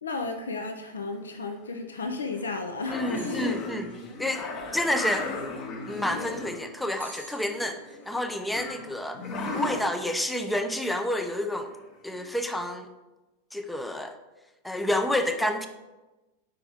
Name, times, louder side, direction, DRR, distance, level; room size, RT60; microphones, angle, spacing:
voice 1, 0.0-3.6, left 3 dB, 70° left, 5 dB, 0.5 m, -34 dB
sound 1, 1.1-1.5 2.3-2.4 2.8-6.6 7.0-8.2 8.6-9.8 11.6-11.7 12.1-12.2, left 3 dB, 35° left, 0.9 m, -35 dB
voice 2, 2.9-3.9 4.2-4.4 4.7-5.3 5.9-7.8 8.1-9.2 9.5-11.7 12.0-12.9 13.5-14.2 14.6-15.7, left 1 dB, 5° left, 6 dB, 0.4 m, -29 dB
sound 2, 3.0-3.9 6.9-8.1, right 2 dB, 80° right, 1.0 m, -47 dB
5.2 x 4.9 x 4.6 m, 1.1 s
figure-of-eight pair, 90°, 0 cm